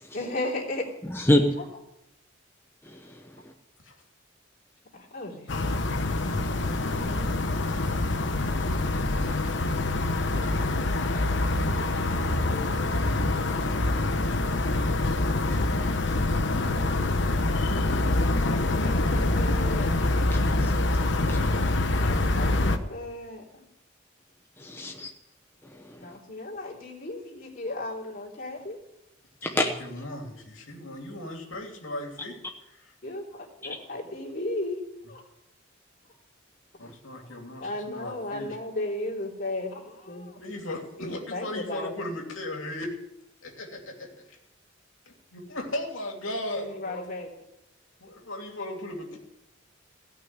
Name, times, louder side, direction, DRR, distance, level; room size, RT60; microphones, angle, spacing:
voice 1, 0.1-0.9 1.6-1.7 4.9-5.5 15.5-16.1 18.4-20.1 22.0-23.4 26.0-28.8 33.0-34.8 35.1-35.2 37.3-40.4 41.0-41.9 46.5-47.3, left 2 dB, 45° left, -2 dB, 3.4 m, -35 dB
voice 2, 1.1-1.4 2.9-3.2 9.3-9.5 12.1-12.7 20.3-20.7 21.3-21.6 24.6-25.1 25.8-26.0 29.4-29.7, left 1 dB, 10° left, 3 dB, 0.9 m, -29 dB
sound 1, 5.5-22.8, left 2 dB, 60° left, 1.0 m, -25 dB
voice 3, 29.5-32.4 32.7-32.9 36.8-38.6 40.4-43.0 43.4-44.4 45.1-47.1 48.0-49.2, left 1 dB, 80° left, 1 dB, 2.9 m, -37 dB
17.0 x 6.1 x 9.5 m, 0.87 s
head